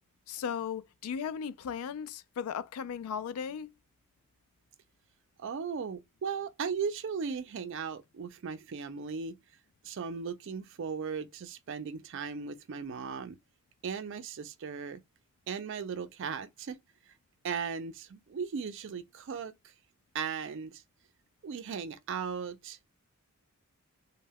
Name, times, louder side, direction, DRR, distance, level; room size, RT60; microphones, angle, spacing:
voice 1, 0.3-3.7, left 7 dB, 85° left, 0.3 m, -36 dB
voice 2, 5.4-9.4 9.8-13.4 13.8-15.0 15.5-16.8 17.4-19.5 20.1-20.8 21.4-22.8, right 6 dB, 60° right, 0.4 m, -37 dB
2.1 x 2.1 x 3.4 m
head